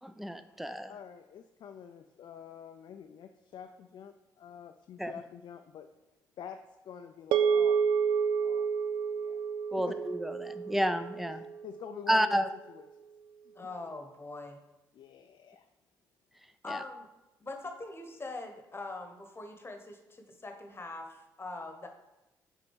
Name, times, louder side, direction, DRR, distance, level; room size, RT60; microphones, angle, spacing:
voice 1, 0.0-0.9 5.0-5.1 9.7-11.4 12.1-12.5 16.7-16.8, equal, ahead, 11 dB, 0.5 m, -30 dB
voice 2, 0.9-5.9 6.4-6.6 6.8-7.9 8.4-8.7 9.1-9.4 9.8-10.0 11.6-12.8 13.6-13.7 14.9-15.7, left 8 dB, 60° left, 6 dB, 0.4 m, -47 dB
sound 1, 7.3-11.8, right 6 dB, 75° right, 0.4 m, -29 dB
voice 3, 13.5-14.6 16.6-17.1 17.4-21.9, left 2 dB, 25° left, 4 dB, 1.1 m, -42 dB
5.3 x 4.0 x 4.6 m, 0.99 s
hypercardioid pair, 50°, 9 cm